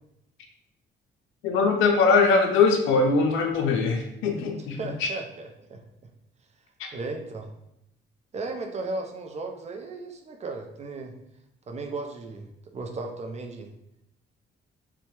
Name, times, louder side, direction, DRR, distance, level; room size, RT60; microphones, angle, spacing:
voice 1, 1.4-4.8 6.8-6.9, left 4 dB, 85° left, 4 dB, 0.4 m, -21 dB
voice 2, 4.8-5.8 6.9-7.5 8.3-11.2 11.7-12.5 12.7-13.7, right 3 dB, 35° right, 3 dB, 0.4 m, -35 dB
2.7 x 2.1 x 3.0 m, 0.82 s
cardioid pair, 90°, 20 cm